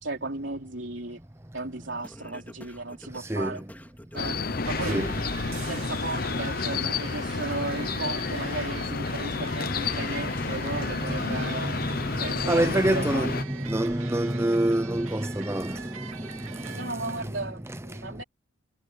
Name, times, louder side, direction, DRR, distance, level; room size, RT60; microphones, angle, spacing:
voice 1, 0.0-1.2 1.5-3.6 4.1-4.4 4.7-5.1 5.6-11.8 12.2-13.3 16.8-18.2, right 2 dB, 60° right, 3.7 m, -35 dB
Singing, 2.0-6.2 6.6-17.0, equal, 10° left, 3.9 m, -51 dB
voice 2, 3.2-3.6 4.9-5.1 9.3-10.5 10.9-17.3 17.6-18.2, right 1 dB, 10° right, 0.8 m, -29 dB
sound 1, 4.2-13.4, left 4 dB, 45° left, 0.9 m, -30 dB
sound 2, 4.6-17.3, right 5 dB, 80° right, 2.8 m, -43 dB
head